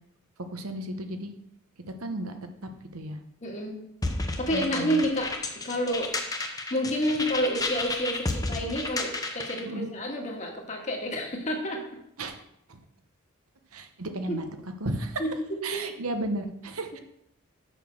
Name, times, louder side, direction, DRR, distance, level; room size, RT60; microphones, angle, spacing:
voice 1, 0.5-1.3 2.0-2.4 2.6-3.2 4.5-5.0 9.6-9.9 12.2-12.4 12.7-12.8 13.7-14.4 14.8-15.2 15.6-17.0, right 1 dB, 85° right, 7 dB, 1.0 m, -33 dB
voice 2, 3.4-3.8 4.4-5.3 5.6-6.1 6.7-11.8 14.3-14.4 15.2-15.8, equal, 35° left, 1 dB, 1.7 m, -29 dB
sound 1, 4.0-9.7, left 2 dB, 15° left, 0.8 m, -32 dB
6.8 x 6.0 x 6.4 m, 0.76 s
head